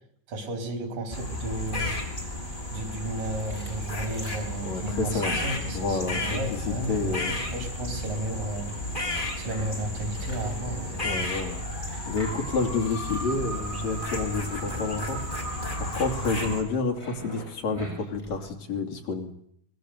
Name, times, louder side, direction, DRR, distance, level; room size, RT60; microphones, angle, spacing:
voice 1, 0.3-2.3 2.7-11.0, right 1 dB, 90° right, 7 dB, 5.5 m, -34 dB
sound 1, 1.1-16.6, left 1 dB, 15° left, 4.2 m, -33 dB
sound 2, 3.0-18.5, equal, 10° right, 7.4 m, -47 dB
voice 2, 4.6-5.3 5.7-7.3 11.0-11.6 12.0-15.2 15.8-19.3, left 3 dB, 55° left, 4 dB, 4.0 m, -29 dB
24.0 x 19.5 x 8.2 m, 0.69 s
omnidirectional pair, 3.7 m